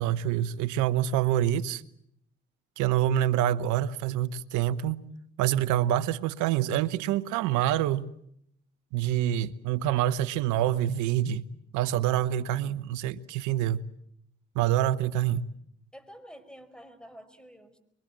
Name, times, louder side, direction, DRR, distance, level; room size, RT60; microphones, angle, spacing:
voice 1, 0.0-1.8 2.8-5.0 5.4-8.1 8.9-11.4 11.7-13.9 14.5-15.5, right 12 dB, 85° right, 1.0 m, -26 dB
voice 2, 15.9-17.8, equal, 5° left, 5.1 m, -49 dB
24.0 x 24.0 x 7.6 m
supercardioid pair, 50°, 29 cm